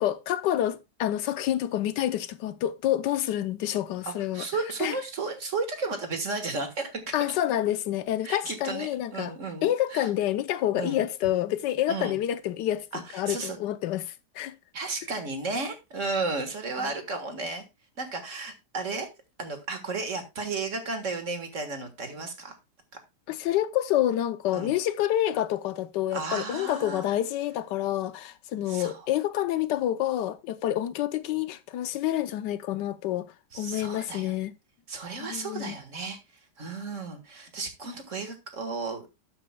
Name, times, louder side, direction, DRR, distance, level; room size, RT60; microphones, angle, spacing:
voice 1, 0.0-4.5 4.8-5.0 7.1-9.3 9.6-12.9 13.1-14.6 16.8-16.9 23.3-33.3 33.5-34.5 35.2-35.8, left 12 dB, 80° left, 1.3 m, -28 dB
voice 2, 4.0-7.1 8.2-10.1 10.8-11.0 11.9-12.2 12.9-13.6 14.7-17.6 18.0-19.1 19.4-22.6 24.5-24.7 26.1-27.0 28.7-29.0 33.5-34.3 34.9-36.2 36.6-39.1, right 3 dB, 45° right, 1.8 m, -33 dB
12.0 x 8.7 x 2.2 m
omnidirectional pair, 1.9 m